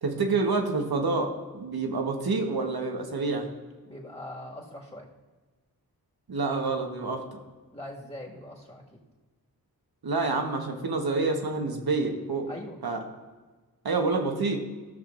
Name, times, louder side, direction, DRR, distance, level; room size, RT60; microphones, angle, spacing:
voice 1, 0.0-3.5 6.3-7.4 10.0-12.5 12.8-13.0 13.8-14.6, right 3 dB, 75° right, 3 dB, 1.3 m, -28 dB
voice 2, 3.9-5.1 7.7-9.0 12.5-12.8, left 1 dB, 15° left, -2 dB, 2.0 m, -41 dB
15.5 x 6.5 x 2.6 m, 1.3 s
wide cardioid pair, 65°, 38 cm